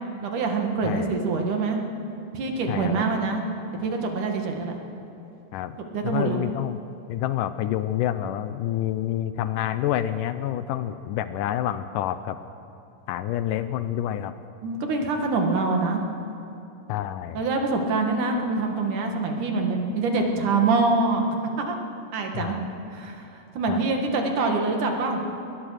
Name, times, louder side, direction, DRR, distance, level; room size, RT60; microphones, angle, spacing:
voice 1, 0.2-1.8 2.3-3.4 3.8-4.8 5.9-6.4 14.6-16.0 17.3-21.2 21.6-21.8 22.1-22.5 22.9-25.2, right 3 dB, 65° right, 3 dB, 3.3 m, -25 dB
voice 2, 0.8-1.2 2.7-3.0 5.5-5.8 6.0-6.8 7.1-12.4 13.1-14.3 16.9-17.4 22.3-22.7 23.7-23.8, left 12 dB, 80° left, 12 dB, 2.1 m, -28 dB
21.0 x 20.0 x 6.5 m, 2.8 s
omnidirectional pair, 4.0 m